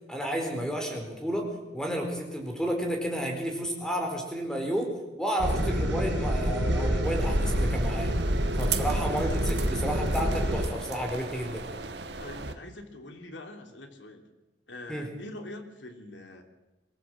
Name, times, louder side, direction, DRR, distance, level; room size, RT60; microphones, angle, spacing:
voice 1, 0.1-1.5 1.7-4.9 5.2-8.1 8.6-11.6 14.9-15.1, equal, 5° left, 2 dB, 4.3 m, -31 dB
sound 1, 5.4-10.7, equal, 85° right, 4.8 m, -27 dB
sound 2, 7.0-12.5, right 5 dB, 65° right, 1.5 m, -38 dB
voice 2, 8.5-8.9 12.2-14.2 14.7-16.4, left 1 dB, 85° left, 5 dB, 3.0 m, -44 dB
23.5 x 15.0 x 7.8 m, 1.1 s
head